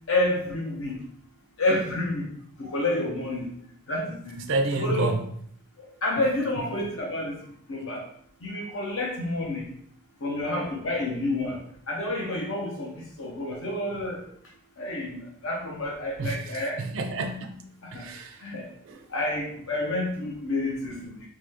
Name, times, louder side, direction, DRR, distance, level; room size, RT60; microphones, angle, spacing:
voice 1, 0.1-1.0 1.6-2.3 2.6-3.5 3.9-4.3 4.7-5.1 5.8-7.4 7.7-8.0 8.4-9.7 10.2-11.6 11.9-14.2 14.8-15.1 15.4-16.8 17.8-18.0 18.4-18.7 19.1-21.3, left 2 dB, 60° left, -1 dB, 0.9 m, -29 dB
voice 2, 4.5-5.2 16.2-18.4 18.9-19.1, right 2 dB, 60° right, 4 dB, 0.4 m, -29 dB
3.7 x 3.1 x 3.5 m, 0.65 s
head